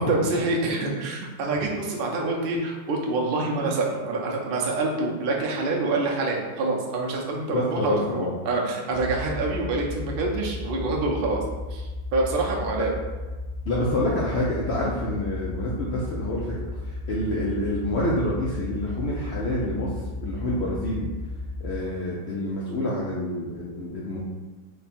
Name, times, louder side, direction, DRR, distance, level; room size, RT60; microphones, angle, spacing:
voice 1, 0.0-11.4 11.7-12.9, right 3 dB, 75° right, -1 dB, 0.5 m, -26 dB
voice 2, 7.5-8.3 12.8-12.9 13.7-19.9 20.2-21.1 21.6-24.2, left 1 dB, 75° left, -5 dB, 0.6 m, -27 dB
sound 1, 8.9-21.7, left 2 dB, 40° left, 0.7 m, -34 dB
3.2 x 2.2 x 4.1 m, 1.2 s
omnidirectional pair, 1.7 m